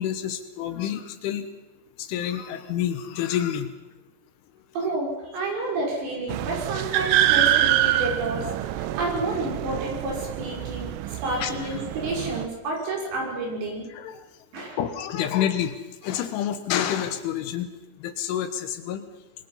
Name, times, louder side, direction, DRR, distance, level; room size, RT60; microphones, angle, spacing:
voice 1, 0.0-1.5 2.0-3.7 7.3-7.5 11.4-11.5 13.9-14.2 14.8-15.8 16.0-17.7 18.0-19.1, left 10 dB, 75° left, 9 dB, 3.4 m, -28 dB
voice 2, 4.7-13.9 14.5-14.8, right 2 dB, 55° right, -1 dB, 7.4 m, -30 dB
sound 1, 6.3-12.5, right 13 dB, 90° right, 3.6 m, -25 dB
25.0 x 22.0 x 5.6 m, 1.0 s
omnidirectional pair, 5.9 m